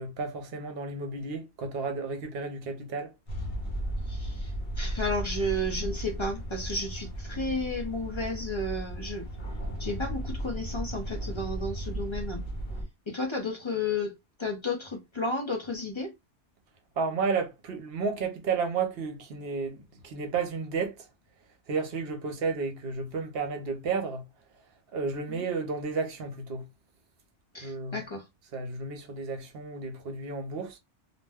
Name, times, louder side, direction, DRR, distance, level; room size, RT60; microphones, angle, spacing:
voice 1, 0.0-3.1 17.0-21.0 21.7-24.2 24.9-26.7 27.6-28.0 28.5-30.8, right 4 dB, 60° right, 0.9 m, -32 dB
sound 1, 3.3-12.8, right 1 dB, 60° left, 1.0 m, -35 dB
voice 2, 4.1-9.3 9.8-12.4 13.1-16.1 25.3-25.4 27.5-28.2, left 2 dB, 30° left, 0.6 m, -33 dB
2.5 x 2.1 x 3.4 m
omnidirectional pair, 1.2 m